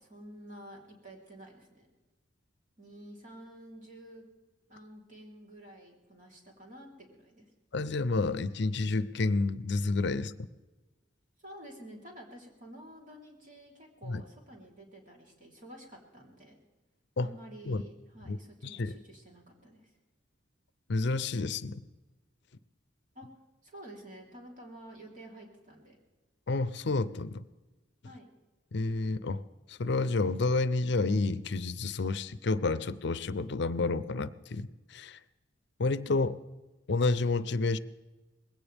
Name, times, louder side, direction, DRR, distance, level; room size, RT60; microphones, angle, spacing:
voice 1, 0.0-1.9 2.8-4.3 4.7-7.5 11.4-16.6 17.2-19.9 23.1-23.3 23.6-26.0 28.0-28.3, right 1 dB, 45° right, -1 dB, 3.6 m, -50 dB
voice 2, 7.7-10.3 14.1-14.2 17.2-17.3 17.7-17.8 18.3-18.4 18.6-18.9 20.9-21.8 26.5-27.4 28.7-29.4 29.7-35.2 35.8-36.4 36.9-37.8, left 3 dB, 65° left, 15 dB, 0.6 m, -30 dB
20.5 x 17.0 x 3.5 m, 1.2 s
head